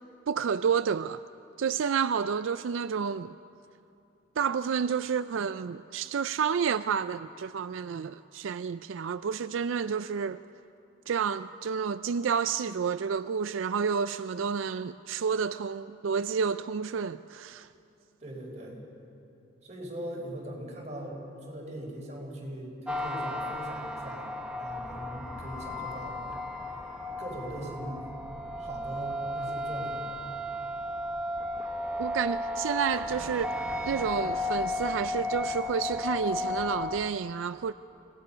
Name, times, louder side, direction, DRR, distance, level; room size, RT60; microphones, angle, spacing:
voice 1, 0.3-1.2 1.6-3.3 4.4-10.4 11.1-17.7 32.0-33.6 33.8-37.7, right 6 dB, 85° right, 0.4 m, -30 dB
voice 2, 18.2-18.8 19.6-26.2 27.2-28.1 28.6-30.1, right 1 dB, 35° right, 4.9 m, -40 dB
sound 1, 22.9-37.1, left 1 dB, 5° right, 0.9 m, -34 dB
26.5 x 18.5 x 5.7 m
head